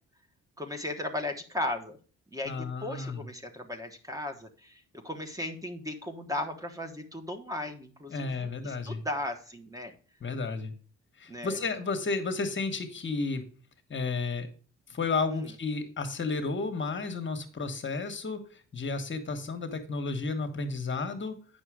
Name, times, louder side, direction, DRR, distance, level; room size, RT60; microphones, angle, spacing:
voice 1, 0.6-2.0 2.3-9.9 11.3-11.6 15.3-15.5, left 1 dB, 10° right, 5 dB, 1.4 m, -36 dB
voice 2, 2.4-3.2 8.1-9.0 10.2-10.7 11.2-13.4 13.9-14.5 14.9-21.3, left 4 dB, 40° left, 7 dB, 1.5 m, -32 dB
8.9 x 6.1 x 4.9 m, 0.39 s
cardioid pair, 90°, 30 cm